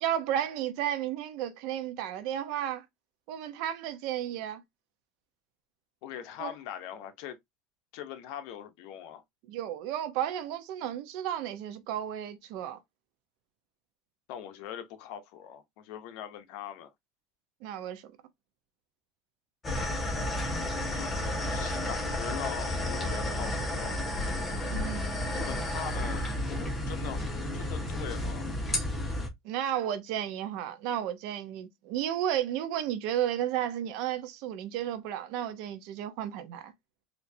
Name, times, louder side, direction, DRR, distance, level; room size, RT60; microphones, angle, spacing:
voice 1, 0.0-2.8 3.3-4.6 6.4-6.5 9.5-12.8 17.6-18.1 24.7-25.0 29.4-36.7, right 11 dB, 65° right, 0.8 m, -33 dB
voice 2, 6.0-7.4 7.9-9.2 14.3-16.9 20.9-21.1 21.5-24.0 25.3-26.4 26.9-28.5, left 10 dB, 65° left, 0.8 m, -42 dB
sound 1, 19.6-29.3, left 1 dB, 15° left, 1.1 m, -32 dB
4.4 x 2.7 x 2.7 m
supercardioid pair, 145°, 0 cm